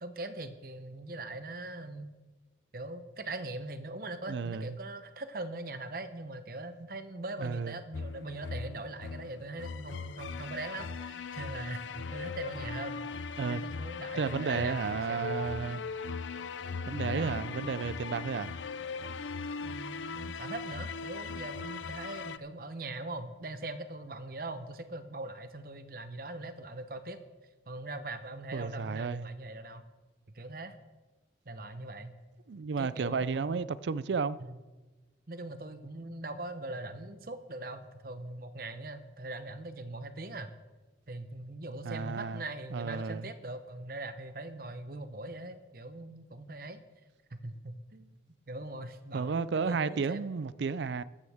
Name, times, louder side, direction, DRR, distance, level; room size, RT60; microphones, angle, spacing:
voice 1, 0.0-2.1 2.7-15.5 17.1-17.4 19.6-27.2 27.7-29.8 30.3-30.7 31.5-32.1 32.8-33.6 34.4-34.6 35.3-40.5 41.1-46.8 47.3-48.1 48.5-50.3, right 2 dB, 50° right, 0.9 m, -41 dB
voice 2, 4.3-4.8 7.4-7.7 13.4-13.6 14.2-15.8 16.9-18.5 28.5-29.3 32.5-34.4 41.8-42.4 42.7-43.3 49.1-51.0, right 5 dB, 75° right, 0.4 m, -32 dB
sound 1, 7.9-22.4, left 5 dB, 90° left, 0.5 m, -39 dB
14.5 x 12.5 x 3.5 m
head